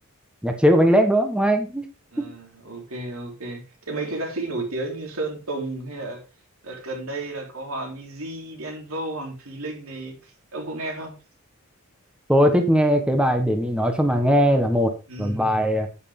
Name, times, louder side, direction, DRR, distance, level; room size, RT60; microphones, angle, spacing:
voice 1, 0.4-1.8 12.3-14.9 15.2-15.9, equal, 5° right, 5 dB, 1.3 m, -19 dB
voice 2, 2.1-6.2 6.6-11.1 15.1-15.6, right 2 dB, 70° right, 2 dB, 3.6 m, -33 dB
9.8 x 9.3 x 3.7 m, 0.30 s
head